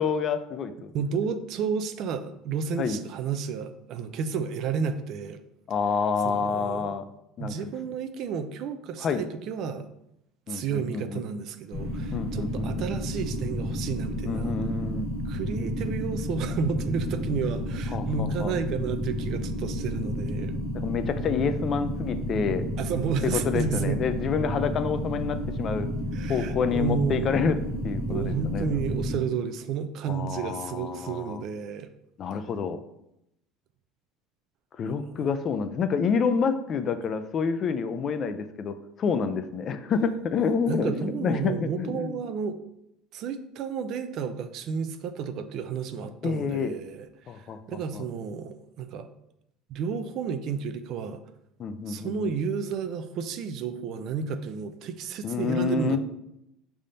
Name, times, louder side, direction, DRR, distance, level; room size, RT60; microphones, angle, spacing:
voice 1, 0.0-0.9 2.8-3.0 5.7-7.0 7.4-7.5 9.0-9.2 10.5-11.2 12.1-12.8 14.2-15.1 17.9-18.5 20.7-22.6 23.2-25.9 26.3-27.6 27.8-28.8 30.1-31.4 32.2-32.8 34.8-42.2 46.2-46.8 47.3-48.0 51.6-52.3 55.2-56.0, left 6 dB, 45° left, 10 dB, 0.4 m, -28 dB
voice 2, 0.9-5.4 6.2-7.0 7.4-9.9 10.5-14.6 15.3-20.6 22.8-24.0 26.1-27.6 28.1-31.9 34.9-35.1 40.7-42.6 43.1-49.1 49.7-51.2 51.9-56.0, right 6 dB, 60° right, 10 dB, 0.4 m, -31 dB
sound 1, 11.7-29.2, equal, 70° left, 1.4 m, -31 dB
5.4 x 3.4 x 2.6 m, 0.82 s
supercardioid pair, 105°, 0 cm